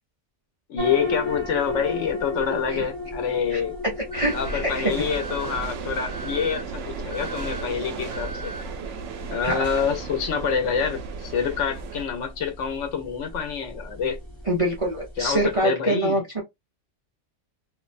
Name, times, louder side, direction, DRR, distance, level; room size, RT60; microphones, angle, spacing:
voice 1, 0.7-3.8 4.3-8.5 9.3-14.2 15.2-16.2, left 7 dB, 80° left, 1.0 m, -27 dB
sound 1, 0.8-15.6, left 2 dB, 25° left, 1.0 m, -36 dB
Alarm, 4.1-4.6 5.1-5.6 6.1-6.6 7.1-7.6 8.1-8.6, right 1 dB, 5° left, 0.6 m, -38 dB
voice 2, 4.1-4.9 9.4-9.6 14.5-16.4, right 1 dB, 35° right, 0.6 m, -25 dB
sound 2, 4.1-12.1, right 5 dB, 80° right, 0.9 m, -35 dB
2.5 x 2.1 x 2.4 m
omnidirectional pair, 1.2 m